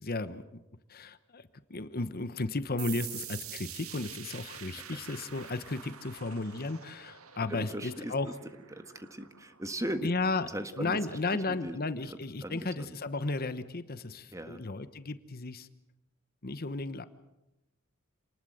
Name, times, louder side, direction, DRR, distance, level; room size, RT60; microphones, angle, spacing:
voice 1, 0.0-0.4 0.9-8.4 10.0-10.5 10.8-15.7 16.4-17.1, left 3 dB, 45° left, 12 dB, 1.1 m, -34 dB
sound 1, 2.8-10.2, right 10 dB, 75° right, 1.8 m, -46 dB
voice 2, 7.5-8.3 8.7-10.1 10.4-11.0 11.3-11.8 12.4-12.9 14.3-14.6, right 1 dB, 15° right, 9 dB, 1.5 m, -38 dB
28.0 x 19.5 x 7.9 m, 0.95 s
head